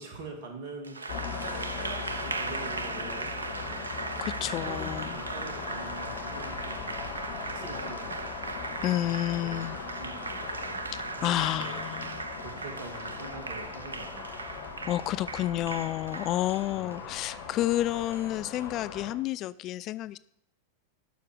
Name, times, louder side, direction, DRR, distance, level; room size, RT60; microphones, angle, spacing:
voice 1, 0.0-4.2 4.6-7.0 7.5-8.2 8.7-9.0 9.4-11.9 12.4-14.5 16.7-17.1, right 4 dB, 50° right, 4 dB, 2.4 m, -45 dB
Applause, 0.8-18.7, right 3 dB, 75° right, 0.6 m, -38 dB
sound 1, 1.1-19.1, left 6 dB, 50° left, 2.1 m, -40 dB
voice 2, 4.2-5.2 8.8-9.8 10.9-12.3 14.9-20.2, left 14 dB, 35° left, 16 dB, 0.4 m, -30 dB
12.0 x 5.8 x 6.5 m, 0.75 s
figure-of-eight pair, 90°, 0 cm